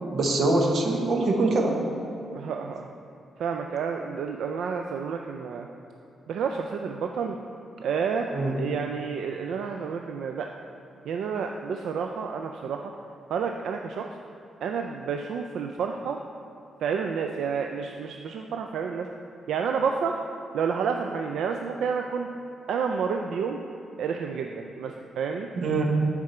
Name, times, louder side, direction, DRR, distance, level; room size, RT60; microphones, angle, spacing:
voice 1, 0.0-1.8 8.3-8.5 25.6-25.8, right 2 dB, 60° right, 1 dB, 1.1 m, -24 dB
voice 2, 2.3-2.9 3.4-5.7 6.3-7.4 7.8-10.5 11.1-12.9 13.3-14.1 14.6-16.2 16.8-19.1 19.5-20.2 20.5-22.4 22.7-23.6 24.0-25.5, right 6 dB, 80° right, 3 dB, 0.4 m, -30 dB
10.5 x 4.8 x 4.3 m, 2.7 s
cardioid pair, 130°, 0 cm